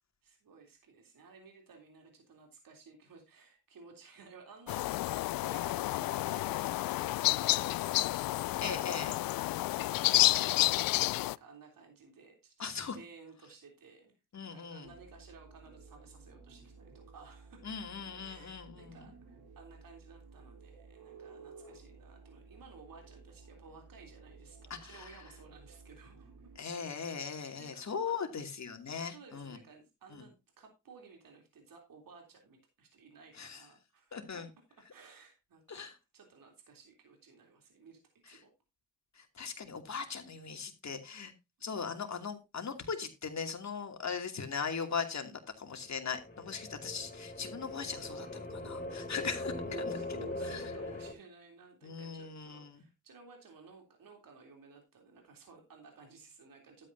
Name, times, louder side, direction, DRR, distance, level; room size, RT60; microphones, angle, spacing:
voice 1, 0.2-12.5 12.9-14.1 14.5-17.7 18.2-26.3 26.6-26.9 27.6-28.2 29.0-34.4 34.9-38.0 38.3-38.5 49.9-56.9, right 4 dB, 60° right, 3 dB, 3.3 m, -56 dB
sound 1, 4.7-11.3, left 17 dB, 65° left, 0.5 m, -30 dB
voice 2, 8.6-9.1 12.6-13.0 14.3-14.9 17.6-19.0 24.7-25.2 26.6-29.6 30.1-30.2 33.3-33.6 34.1-34.5 35.7-35.9 38.3-38.4 39.2-41.3 41.6-50.6 51.8-52.8, left 6 dB, 45° left, 5 dB, 2.6 m, -39 dB
sound 2, 14.8-26.6, right 4 dB, 80° right, 3.0 m, -55 dB
sound 3, 46.0-51.1, left 2 dB, 20° left, 4.2 m, -40 dB
12.0 x 8.8 x 2.7 m, 0.25 s
supercardioid pair, 50°, 37 cm